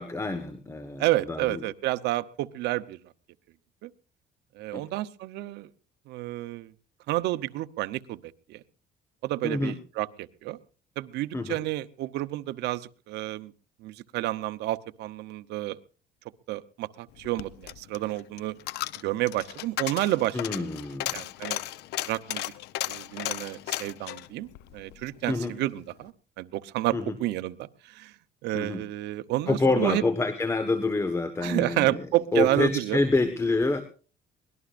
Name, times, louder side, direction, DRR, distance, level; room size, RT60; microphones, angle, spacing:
voice 1, 0.0-1.6 4.7-4.8 9.4-9.8 11.3-11.6 20.3-21.1 25.3-25.5 26.9-27.2 28.5-28.8 29.5-32.1 32.3-33.8, left 3 dB, 15° left, 10 dB, 1.4 m, -27 dB
voice 2, 1.0-3.0 3.8-3.9 4.6-5.7 6.1-6.7 7.1-8.6 9.2-10.6 11.0-13.5 13.8-15.8 16.5-18.5 19.0-20.7 21.1-21.6 22.0-22.5 22.9-26.1 26.4-28.1 28.4-30.0 31.4-33.0, right 16 dB, 85° right, 13 dB, 0.8 m, -30 dB
Coin (dropping), 17.1-25.6 25.9-26.0, left 15 dB, 85° left, 0.8 m, -35 dB
23.5 x 18.5 x 2.5 m, 0.38 s
cardioid pair, 110°, 17 cm